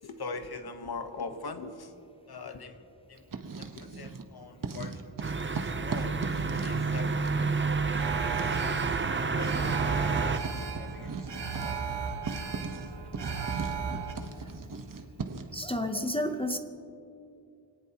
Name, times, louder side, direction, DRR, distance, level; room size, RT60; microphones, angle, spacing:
voice 1, 0.0-1.9 2.3-2.8 3.1-3.3 3.6-6.3 6.6-7.6 7.8-8.1 9.3-11.9, left 4 dB, 55° left, 1.1 m, -42 dB
Writing, 3.2-4.3 4.6-15.6, right 4 dB, 45° right, 1.0 m, -39 dB
sound 1, 5.2-10.4, right 4 dB, 25° right, 0.6 m, -29 dB
Alarm, 8.0-14.1, right 6 dB, 60° right, 1.5 m, -36 dB
voice 2, 15.5-16.6, left 1 dB, 10° left, 0.7 m, -30 dB
24.5 x 18.5 x 2.9 m
wide cardioid pair, 155°, 46 cm